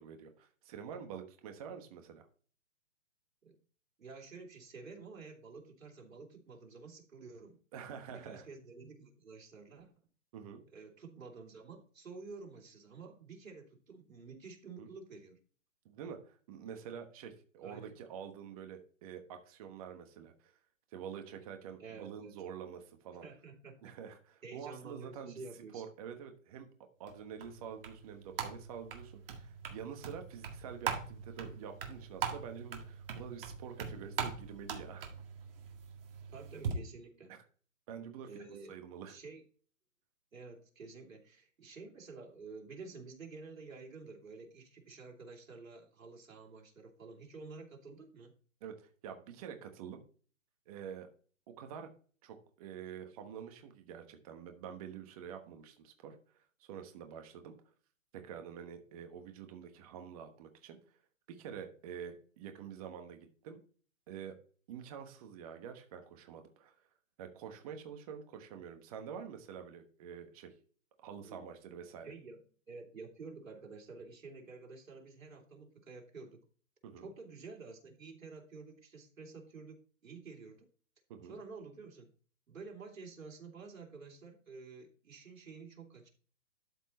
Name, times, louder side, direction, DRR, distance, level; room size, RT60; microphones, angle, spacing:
voice 1, 0.0-2.3 7.7-8.5 10.3-10.6 14.8-14.9 15.8-20.5 20.9-23.2 23.8-25.4 25.7-26.7 27.0-35.1 37.3-37.4 37.9-38.3 38.7-39.2 48.6-50.0 50.7-51.1 51.5-51.9 52.2-56.2 56.6-57.5 58.1-60.8 61.3-63.6 64.1-64.4 64.7-66.7 67.2-70.5 71.0-72.1 76.8-77.1 81.1-81.4, right 7 dB, 25° right, 6 dB, 1.2 m, -47 dB
voice 2, 4.0-7.6 8.1-9.9 10.7-15.4 17.6-18.0 21.8-22.3 23.2-24.1 24.4-25.8 36.3-37.3 38.2-39.4 40.3-48.3 71.2-71.4 72.0-72.4 72.7-76.4 77.0-80.7 81.3-82.1 82.5-86.1, right 4 dB, 85° right, 1 dB, 3.0 m, -50 dB
sound 1, 27.1-36.7, right 7 dB, 45° right, 1.9 m, -42 dB
12.0 x 4.5 x 4.1 m, 0.41 s
hypercardioid pair, 155°, 39 cm